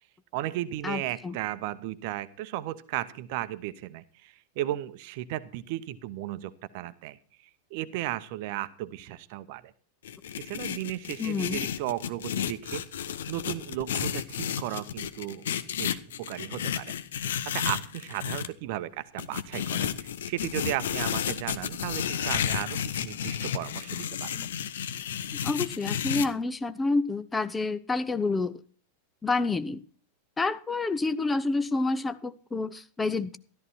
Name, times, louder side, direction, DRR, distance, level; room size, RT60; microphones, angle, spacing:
voice 1, 0.3-7.2 7.4-9.7 10.4-12.8 13.3-15.5 15.8-16.9 17.2-24.3, right 14 dB, 50° right, 16 dB, 1.0 m, -35 dB
voice 2, 0.8-1.4 11.2-11.7 24.4-24.5 25.4-28.6 29.2-29.8 30.4-33.4, left 3 dB, 10° left, 12 dB, 0.9 m, -28 dB
sound 1, 10.0-18.5 19.2-26.3, left 9 dB, 60° left, 1.0 m, -32 dB
13.5 x 13.0 x 4.3 m, 0.42 s
figure-of-eight pair, 90°, 0 cm